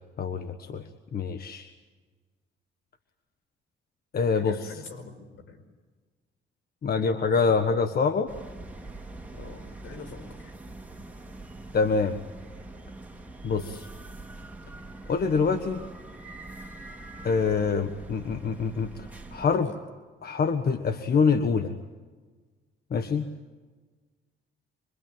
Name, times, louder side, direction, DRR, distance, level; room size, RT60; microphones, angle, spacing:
voice 1, 0.2-0.8 1.1-1.7 4.1-4.7 6.8-8.3 11.7-12.2 13.4-13.9 15.1-15.8 17.2-19.7 20.2-21.7 22.9-23.3, left 5 dB, 50° left, 9 dB, 1.6 m, -25 dB
voice 2, 4.3-5.6 7.3-7.6 9.3-10.5 19.5-19.8, left 5 dB, 75° left, 7 dB, 5.0 m, -44 dB
sound 1, 8.3-19.5, right 2 dB, 5° right, 3.4 m, -43 dB
26.0 x 23.5 x 9.2 m, 1.4 s
cardioid pair, 90°, 20 cm